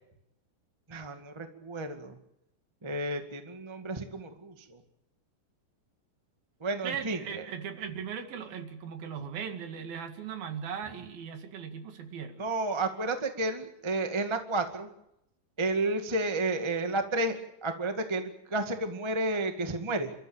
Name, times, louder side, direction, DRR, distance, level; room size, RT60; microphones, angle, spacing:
voice 1, 0.9-2.2 2.8-4.8 6.6-7.2 12.4-14.9 15.6-20.1, right 2 dB, 15° right, 6 dB, 0.8 m, -31 dB
voice 2, 6.8-12.5, right 7 dB, 75° right, 7 dB, 3.9 m, -38 dB
29.0 x 13.5 x 9.0 m, 0.81 s
omnidirectional pair, 4.3 m